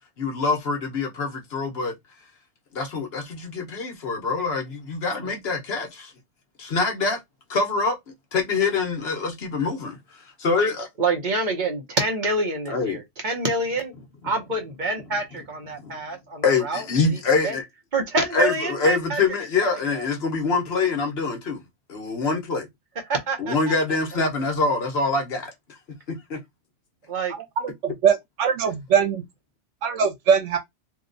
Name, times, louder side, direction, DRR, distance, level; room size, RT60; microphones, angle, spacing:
voice 1, 0.2-1.9 2.7-6.1 6.6-7.2 7.5-8.0 8.3-10.0 10.4-10.9 12.7-13.0 15.8-15.9 16.4-17.6 18.3-21.6 21.9-22.7 23.4-25.5 26.1-26.4, left 4 dB, 60° left, 1.1 m, -25 dB
voice 2, 11.0-13.9 14.2-17.2 17.4-17.6 17.9-19.2 19.9-20.1 23.1-23.7 27.1-27.3, right 3 dB, 45° right, 0.9 m, -26 dB
voice 3, 27.6-29.2 29.8-30.6, right 7 dB, 80° right, 1.1 m, -21 dB
2.8 x 2.2 x 3.8 m
omnidirectional pair, 1.2 m